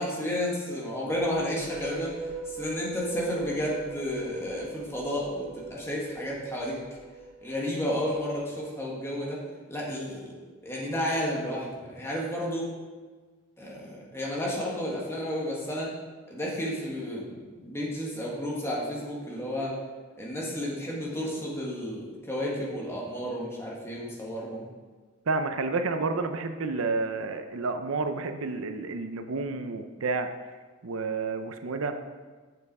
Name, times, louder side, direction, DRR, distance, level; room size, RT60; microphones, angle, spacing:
voice 1, 0.0-2.1 2.5-6.8 7.4-9.4 9.7-10.3 10.6-12.7 13.6-15.9 16.3-19.7 20.2-24.6, equal, 15° left, -4 dB, 1.7 m, -32 dB
sound 1, 1.0-8.5, right 3 dB, 5° right, 1.6 m, -41 dB
voice 2, 25.3-30.3 30.8-32.0, right 3 dB, 80° right, 8 dB, 0.6 m, -30 dB
7.5 x 6.6 x 4.7 m, 1.4 s
head